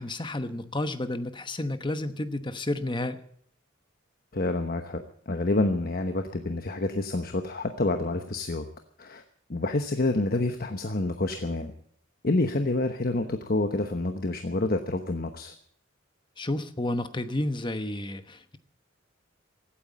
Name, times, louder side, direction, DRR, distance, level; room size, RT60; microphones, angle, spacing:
voice 1, 0.0-3.2 16.4-18.6, left 1 dB, 25° left, 10 dB, 1.0 m, -31 dB
voice 2, 4.3-8.7 9.0-9.2 9.5-11.7 12.2-15.5, left 2 dB, 45° left, 6 dB, 1.1 m, -28 dB
16.0 x 9.4 x 8.8 m, 0.63 s
head